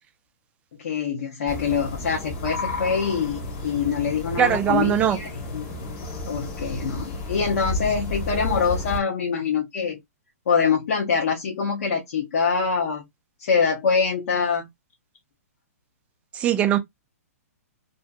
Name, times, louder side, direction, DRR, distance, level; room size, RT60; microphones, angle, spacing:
voice 1, 0.8-5.7 6.2-10.0 10.5-13.0 13.4-14.7, left 6 dB, 65° left, 0.8 m, -24 dB
sound 1, 1.5-9.0, left 2 dB, 40° left, 1.0 m, -32 dB
voice 2, 4.4-5.2 16.3-16.8, right 10 dB, 15° right, 0.3 m, -20 dB
2.7 x 2.5 x 2.3 m
hypercardioid pair, 150°, 8 cm